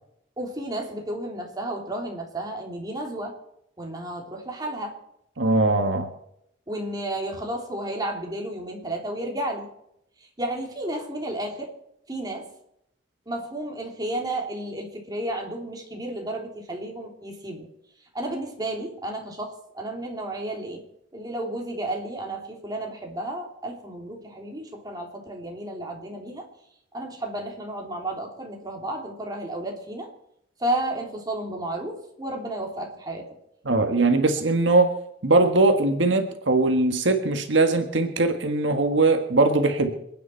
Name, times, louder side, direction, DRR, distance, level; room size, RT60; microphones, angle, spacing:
voice 1, 0.4-3.3 3.8-4.9 6.7-9.7 10.4-11.7 12.1-12.5 13.3-17.7 18.1-20.8 21.1-26.4 26.9-30.1 30.6-33.3, right 1 dB, 20° right, 0 dB, 3.2 m, -32 dB
voice 2, 5.4-6.1 33.6-34.9 35.2-39.9, right 2 dB, 75° right, 6 dB, 1.5 m, -21 dB
28.0 x 9.6 x 4.5 m, 0.77 s
head